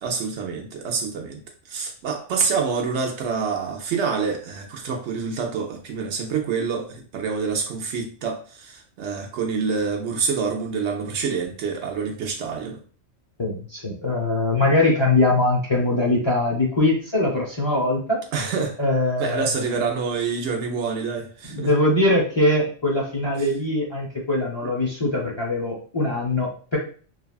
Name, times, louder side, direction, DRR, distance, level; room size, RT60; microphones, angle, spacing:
voice 1, 0.0-1.4 1.7-12.8 18.3-18.8 19.2-21.7 23.4-23.5 24.6-24.7, right 5 dB, 65° right, 2 dB, 0.8 m, -27 dB
voice 2, 13.4-18.2 18.8-19.5 21.5-26.8, left 2 dB, 40° left, -4 dB, 0.4 m, -22 dB
3.2 x 2.3 x 2.3 m, 0.41 s
omnidirectional pair, 1.4 m